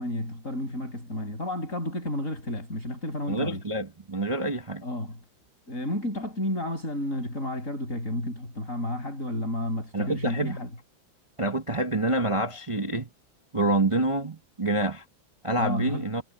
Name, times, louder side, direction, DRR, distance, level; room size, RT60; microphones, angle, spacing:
voice 1, 0.0-3.6 4.8-5.2 5.7-10.7 15.6-16.0, left 1 dB, 40° left, 7.2 m, -31 dB
voice 2, 3.3-4.8 9.9-10.6 11.4-13.1 13.5-15.0 15.4-16.2, right 2 dB, 25° right, 0.7 m, -27 dB
omnidirectional pair, 2.2 m